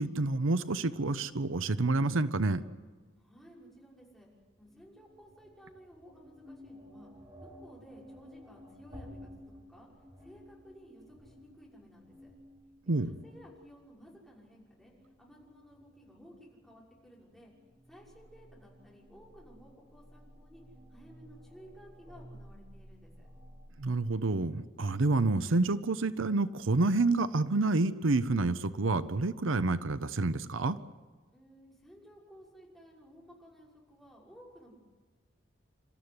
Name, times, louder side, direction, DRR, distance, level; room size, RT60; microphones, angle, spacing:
voice 1, 0.0-2.7 12.9-13.1 23.8-30.8, right 3 dB, 90° right, 13 dB, 0.8 m, -28 dB
voice 2, 3.1-4.3 4.6-7.1 7.4-9.9 10.2-12.3 13.0-17.5 17.9-20.6 20.9-23.3 31.3-34.8, equal, ahead, -5 dB, 6.0 m, -56 dB
sound 1, 4.3-24.0, equal, 20° right, 5.2 m, -54 dB
29.5 x 14.0 x 9.8 m, 1.4 s
head